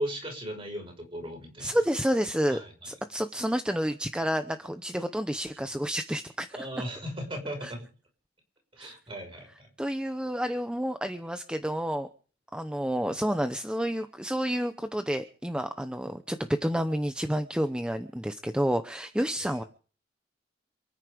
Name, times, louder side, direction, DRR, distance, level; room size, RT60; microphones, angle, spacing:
voice 1, 0.0-1.8 2.5-2.9 6.5-7.9 8.7-9.7, equal, 30° right, 2 dB, 6.2 m, -37 dB
voice 2, 1.6-6.7 7.6-7.7 8.8-8.9 9.8-12.1 12.5-19.6, equal, 5° right, 9 dB, 0.8 m, -30 dB
27.5 x 9.8 x 5.1 m, 0.41 s
head